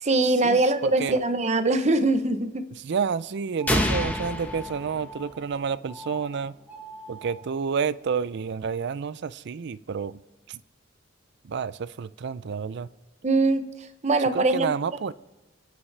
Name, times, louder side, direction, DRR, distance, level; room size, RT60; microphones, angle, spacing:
voice 1, 0.0-2.6 13.2-13.7 14.0-14.7 15.1-15.2, right 2 dB, 35° right, 9 dB, 0.8 m, -22 dB
voice 2, 0.8-1.2 2.8-6.5 7.1-10.2 10.5-10.6 11.5-12.9 14.3-15.1, right 6 dB, 60° right, 17 dB, 0.4 m, -29 dB
sound 1, 3.6-5.4 5.8-6.2 6.6-7.4, equal, 10° right, 2.7 m, -42 dB
sound 2, 3.7-5.6, left 1 dB, 10° left, 1.1 m, -27 dB
28.0 x 9.8 x 3.3 m, 1.0 s
head